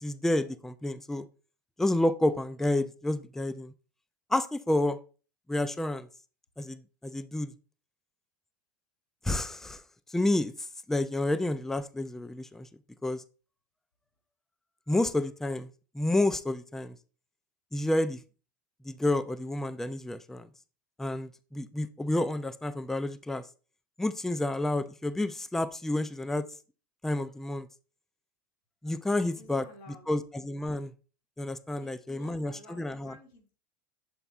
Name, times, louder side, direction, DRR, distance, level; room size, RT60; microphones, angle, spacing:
voice 1, 0.0-1.3 1.8-3.7 4.3-5.0 5.5-6.1 6.6-7.5 9.2-9.8 10.1-12.7 13.0-13.2 14.9-17.0 17.7-18.2 18.8-20.5 21.0-23.4 24.0-26.4 27.0-27.7 28.8-29.6 30.1-30.9 31.4-33.1, left 1 dB, 5° left, 13 dB, 0.4 m, -30 dB
voice 2, 29.4-30.0 31.8-33.5, left 1 dB, 75° left, 4 dB, 2.6 m, -52 dB
7.2 x 4.0 x 3.4 m, 0.36 s
supercardioid pair, 120°, 10 cm